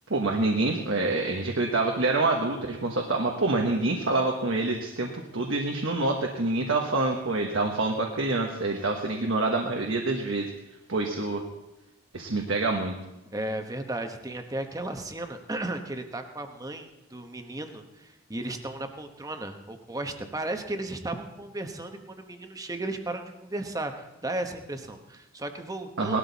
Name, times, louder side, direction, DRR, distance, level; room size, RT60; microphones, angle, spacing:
voice 1, 0.1-10.5 10.9-11.4 12.1-12.9 26.0-26.2, right 2 dB, 65° right, 1 dB, 1.3 m, -26 dB
voice 2, 13.3-26.2, right 2 dB, 15° right, 6 dB, 1.0 m, -35 dB
18.5 x 12.5 x 4.1 m, 0.97 s
head